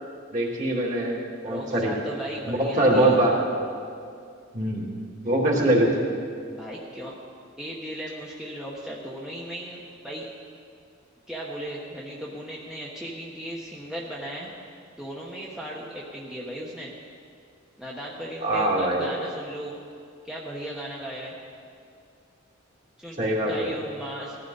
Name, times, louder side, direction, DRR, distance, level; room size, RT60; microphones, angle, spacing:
voice 1, 0.3-1.9 2.5-3.4 4.5-4.8 5.2-5.9 18.4-19.1 23.2-23.7, right 1 dB, 40° right, -3 dB, 2.7 m, -23 dB
voice 2, 1.4-3.2 6.5-7.2 7.6-10.3 11.3-14.5 15.0-16.9 17.8-19.7 20.2-21.3 23.0-24.4, right 1 dB, 5° right, -5 dB, 1.2 m, -36 dB
19.0 x 13.5 x 4.1 m, 2.3 s
head